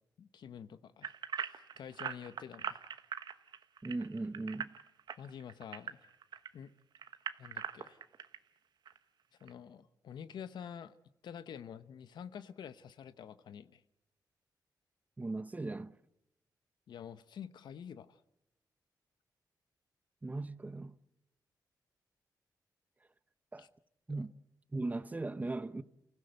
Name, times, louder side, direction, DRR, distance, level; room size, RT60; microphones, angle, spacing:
voice 1, 0.2-2.9 5.2-6.0 6.5-6.7 7.4-8.0 9.4-11.0 11.2-13.8 16.9-18.2 23.6-23.7 24.1-24.3, left 8 dB, 85° left, 1.0 m, -48 dB
sound 1, 1.0-6.5 6.9-8.4 8.9-9.0 9.5-9.6, right 8 dB, 80° right, 1.1 m, -41 dB
voice 2, 3.8-4.7 15.2-15.9 20.2-21.0 23.5-23.7 24.1-24.3 24.7-25.8, right 2 dB, 20° right, 0.8 m, -38 dB
29.5 x 16.0 x 7.9 m
wide cardioid pair, 105°, 7 cm